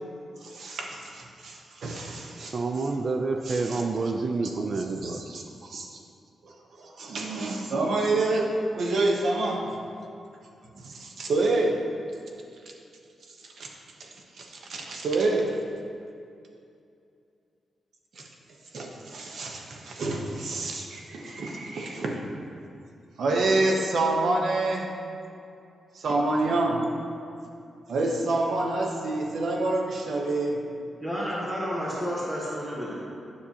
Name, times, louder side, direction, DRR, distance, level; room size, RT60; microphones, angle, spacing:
voice 1, 0.4-2.6 3.4-3.8 4.4-5.9 6.4-6.5 6.8-9.7 10.7-11.8 13.6-13.7 14.0-14.1 14.4-15.6 18.2-18.3 18.7-22.2 23.2-25.0 25.9-26.9 27.9-30.6, right 2 dB, 65° right, 1 dB, 0.9 m, -28 dB
voice 2, 2.4-5.2, right 3 dB, 45° right, 5 dB, 0.4 m, -28 dB
voice 3, 31.0-32.9, equal, 20° right, -6 dB, 1.3 m, -31 dB
9.5 x 6.6 x 2.9 m, 2.5 s
wide cardioid pair, 115°, 0 cm